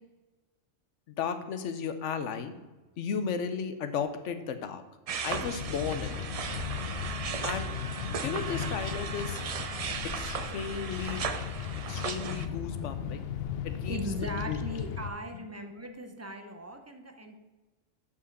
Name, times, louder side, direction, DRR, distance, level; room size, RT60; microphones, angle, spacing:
voice 1, 1.1-2.6 3.0-4.8 5.2-6.2 7.4-9.4 9.8-11.3 11.9-13.3 13.6-14.0 14.5-14.6, left 6 dB, 80° left, 9 dB, 1.1 m, -35 dB
sound 1, 5.1-12.5, right 6 dB, 70° right, 0.3 m, -37 dB
Bird vocalization bird call bird song, 5.3-15.1, left 8 dB, 65° left, 0.7 m, -36 dB
voice 2, 13.9-17.4, equal, 15° right, 5 dB, 0.5 m, -39 dB
5.5 x 5.0 x 6.6 m, 1.2 s
omnidirectional pair, 1.2 m